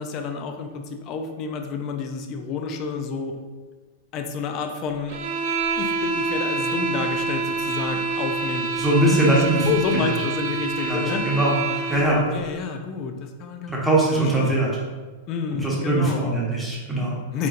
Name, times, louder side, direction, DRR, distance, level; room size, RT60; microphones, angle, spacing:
voice 1, 0.0-3.3 4.1-5.2 5.8-8.7 9.6-11.2 12.3-13.8 14.4-14.6 15.3-16.3 17.3-17.5, left 5 dB, 35° left, 5 dB, 0.5 m, -29 dB
sound 1, 5.1-12.2, right 4 dB, 55° right, 0.5 m, -27 dB
voice 2, 8.7-9.7 9.9-10.1 10.8-12.2 13.7-14.7 15.5-17.2, right 1 dB, 5° right, -5 dB, 1.1 m, -21 dB
4.2 x 3.8 x 2.5 m, 1.4 s
supercardioid pair, 150°, 0 cm